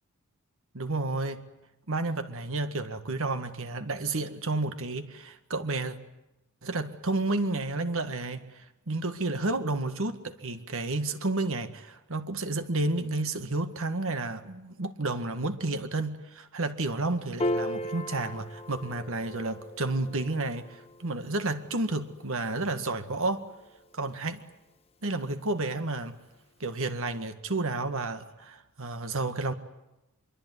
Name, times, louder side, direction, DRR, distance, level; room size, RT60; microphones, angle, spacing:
voice 1, 0.7-1.4 1.9-6.0 6.6-23.5 23.9-24.4 25.0-26.2 26.6-29.5, right 2 dB, 65° right, 1.8 m, -31 dB
Piano, 17.4-24.0, left 1 dB, 30° left, 1.6 m, -37 dB
25.0 x 23.5 x 9.6 m
head